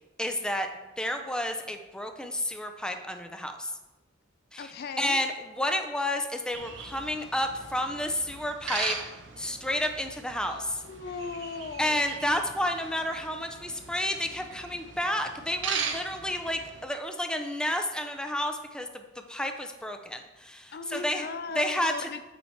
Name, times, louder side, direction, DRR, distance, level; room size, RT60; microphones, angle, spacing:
voice 1, 0.2-0.7 1.0-3.7 4.5-9.0 9.4-10.8 11.8-19.0 19.3-21.3 21.6-22.1, left 1 dB, 5° left, 6 dB, 0.5 m, -31 dB
voice 2, 4.6-5.2 10.5-12.2 20.7-22.3, left 4 dB, 55° left, 10 dB, 0.4 m, -38 dB
sound 1, 6.5-16.8, right 6 dB, 80° right, 0.8 m, -39 dB
8.1 x 4.5 x 4.5 m, 1.1 s
head